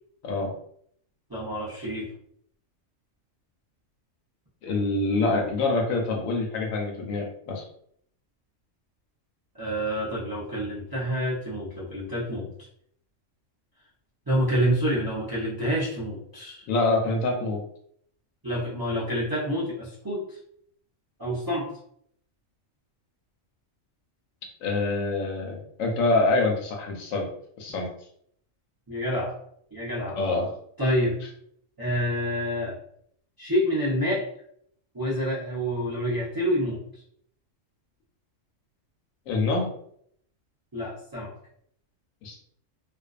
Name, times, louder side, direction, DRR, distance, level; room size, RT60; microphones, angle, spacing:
voice 1, 1.3-2.1 9.6-12.7 14.3-16.7 18.4-20.4 21.2-21.7 28.9-29.4 29.7-30.2 30.8-31.2 31.8-32.8 33.4-34.3 34.9-37.0 40.7-41.3, equal, 30° right, -8 dB, 0.4 m, -28 dB
voice 2, 4.6-7.6 16.7-17.6 24.6-27.3 27.6-27.9 30.2-30.5 39.3-39.7 42.2-42.4, left 3 dB, 85° left, 1 dB, 1.0 m, -25 dB
2.5 x 2.2 x 2.4 m, 0.67 s
omnidirectional pair, 1.4 m